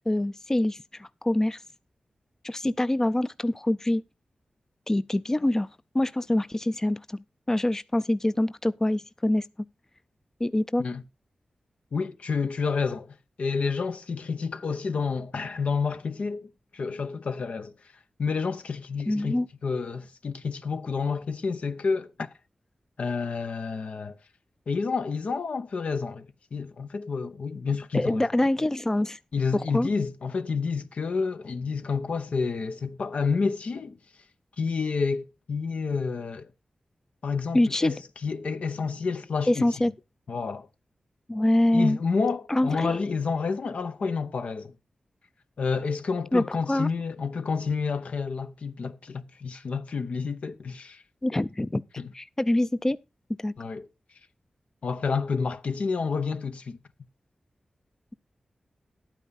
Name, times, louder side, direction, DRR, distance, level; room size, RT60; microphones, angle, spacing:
voice 1, 0.0-1.6 2.4-4.0 4.9-5.7 5.9-7.2 7.5-9.5 10.4-10.8 19.1-19.5 27.9-29.2 29.5-29.9 37.5-37.9 39.5-39.9 41.3-42.0 42.5-43.0 46.3-46.9 51.2-51.8 52.1-53.0 53.4-53.5, left 1 dB, 20° left, 0.4 m, -25 dB
voice 2, 11.9-17.7 18.2-22.3 23.0-24.2 24.7-26.3 26.5-28.3 29.3-34.0 34.6-36.5 37.2-39.8 40.3-40.7 41.7-44.7 45.6-51.0 52.0-52.1 53.6-53.9 54.8-56.8, left 5 dB, 75° left, 0.8 m, -29 dB
11.0 x 9.1 x 4.1 m
cardioid pair, 55°, 2 cm